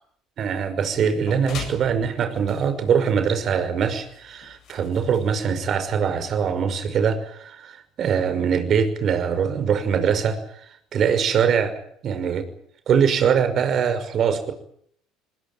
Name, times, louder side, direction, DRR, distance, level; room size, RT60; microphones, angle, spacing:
voice 1, 0.4-10.4 10.9-12.4 12.9-14.5, right 7 dB, 50° right, 9 dB, 5.7 m, -22 dB
sound 1, 0.9-6.3, left 7 dB, 60° left, 7.9 m, -42 dB
23.0 x 21.0 x 9.3 m, 0.65 s
hypercardioid pair, 70°, 0 cm